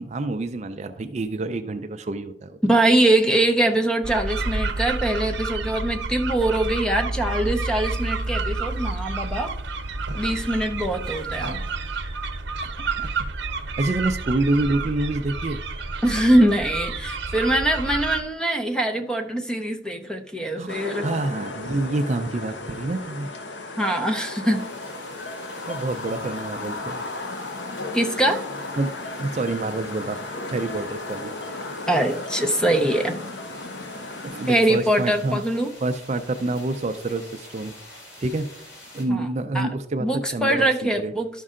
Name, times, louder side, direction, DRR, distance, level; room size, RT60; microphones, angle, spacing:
voice 1, 0.0-2.6 12.6-12.7 13.0-13.3 13.8-15.9 20.5-23.3 25.7-27.0 28.8-31.3 34.2-35.4 35.8-37.7 38.2-38.7 38.9-41.1, right 2 dB, 35° right, 8 dB, 0.4 m, -27 dB
voice 2, 2.6-9.5 10.1-11.6 16.0-21.1 23.8-24.6 27.9-28.4 31.9-33.2 34.5-35.7 39.1-39.2 39.5-39.7 40.0-41.3, right 1 dB, 5° left, 4 dB, 0.6 m, -22 dB
sound 1, 4.0-18.2, right 3 dB, 70° right, 0.9 m, -29 dB
sound 2, 20.7-34.5, left 2 dB, 65° left, 0.9 m, -35 dB
sound 3, 24.5-39.1, left 1 dB, 80° left, 3.2 m, -46 dB
12.0 x 5.4 x 3.7 m, 0.76 s
head